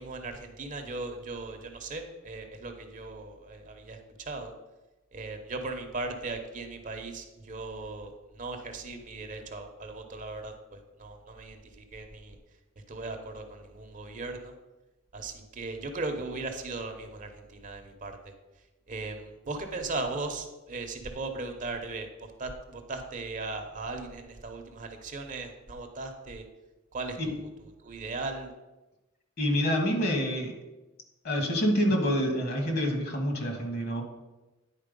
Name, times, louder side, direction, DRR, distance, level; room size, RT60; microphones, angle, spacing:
voice 1, 0.0-4.5 5.1-12.4 12.9-14.5 15.1-18.2 18.9-26.4 26.9-28.5, right 3 dB, 40° right, 5 dB, 0.8 m, -38 dB
voice 2, 29.4-30.5 31.2-34.0, equal, 50° left, 3 dB, 1.6 m, -27 dB
9.8 x 4.3 x 5.2 m, 1.1 s
head